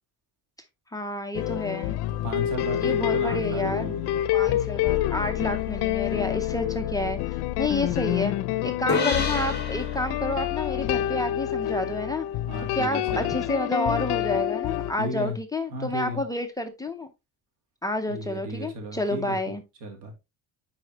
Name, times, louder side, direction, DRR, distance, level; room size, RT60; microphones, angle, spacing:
voice 1, 0.9-2.0 2.7-3.9 4.3-8.3 8.6-12.3 12.7-17.1 17.8-19.6, left 1 dB, 10° left, 0.5 m, -29 dB
sound 1, 1.3-14.9, left 13 dB, 70° left, 0.6 m, -27 dB
voice 2, 2.1-4.3 8.8-9.1 12.5-13.5 15.0-15.4 15.7-16.2 18.1-19.5 19.8-20.1, equal, 85° right, 2.6 m, -35 dB
sound 2, 8.9-12.4, left 4 dB, 25° left, 1.6 m, -32 dB
9.7 x 4.4 x 2.8 m
cardioid pair, 170°, 41 cm